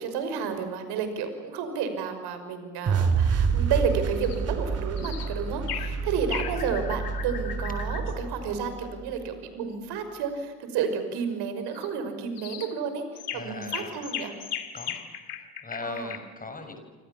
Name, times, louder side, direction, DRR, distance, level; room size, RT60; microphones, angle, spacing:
voice 1, 0.0-13.0 13.3-14.3 15.8-16.1, right 6 dB, 60° right, 8 dB, 5.9 m, -31 dB
sound 1, 2.9-9.0, right 5 dB, 35° right, 3.5 m, -28 dB
sound 2, 4.2-4.4 5.0-5.3 5.7-5.9 6.3-8.1 11.7-11.9 12.4-12.7 13.1-16.2, left 9 dB, 85° left, 2.8 m, -37 dB
voice 2, 5.9-6.2 13.3-16.8, left 3 dB, 20° left, 6 dB, 6.7 m, -41 dB
28.5 x 26.0 x 7.3 m, 1.5 s
hypercardioid pair, 70°, 45 cm